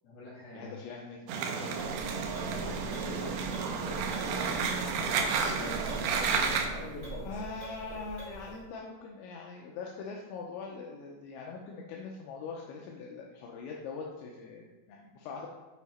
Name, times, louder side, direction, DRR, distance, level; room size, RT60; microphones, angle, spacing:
voice 1, 0.0-0.7 1.4-1.5 2.3-4.7 5.6-7.3, left 2 dB, 55° left, -8 dB, 4.0 m, -44 dB
voice 2, 0.5-1.9 7.2-15.5, left 4 dB, 80° left, -1 dB, 2.8 m, -42 dB
sound 1, 1.3-6.7, right 5 dB, 85° right, 2.4 m, -31 dB
sound 2, 1.7-8.6, right 2 dB, 35° right, 2.1 m, -43 dB
8.4 x 4.5 x 4.2 m, 1.2 s
omnidirectional pair, 5.8 m